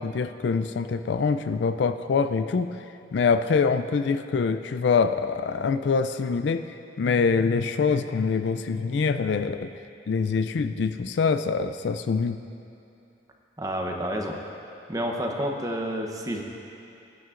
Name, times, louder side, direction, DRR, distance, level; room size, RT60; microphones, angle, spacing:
voice 1, 0.0-2.7 3.1-9.7 10.1-12.4, left 5 dB, 65° left, 9 dB, 0.3 m, -25 dB
voice 2, 13.6-14.4 14.9-16.4, equal, 20° right, 1 dB, 0.8 m, -29 dB
19.5 x 9.4 x 2.5 m, 2.7 s
head